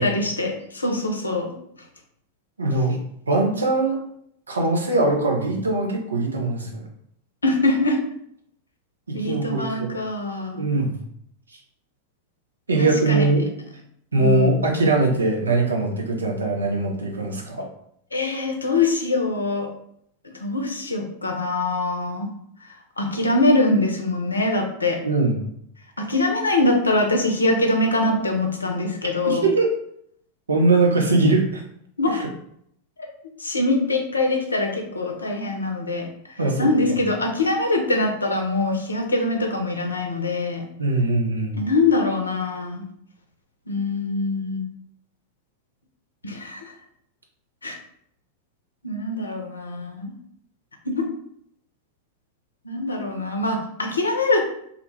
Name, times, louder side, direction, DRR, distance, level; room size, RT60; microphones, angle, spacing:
voice 1, 0.0-1.5 7.4-8.0 9.1-10.7 12.8-13.3 14.2-14.8 18.1-19.7 20.4-22.3 23.0-25.0 26.0-29.5 32.0-32.2 33.4-36.1 36.6-40.6 41.5-42.8 43.7-44.6 46.2-46.7 47.6-47.8 48.8-50.1 50.8-51.1 52.6-54.5, left 2 dB, 80° left, 2 dB, 0.5 m, -23 dB
voice 2, 2.6-3.0 3.3-4.0 4.5-6.8 9.1-9.9 10.5-10.9 12.7-13.4 14.1-17.7 25.0-25.4 29.2-29.7 30.5-31.6 32.1-32.3 36.4-37.0 40.8-41.6, right 2 dB, 75° right, 1 dB, 0.6 m, -21 dB
2.4 x 2.2 x 3.0 m, 0.71 s
figure-of-eight pair, 90°, 0 cm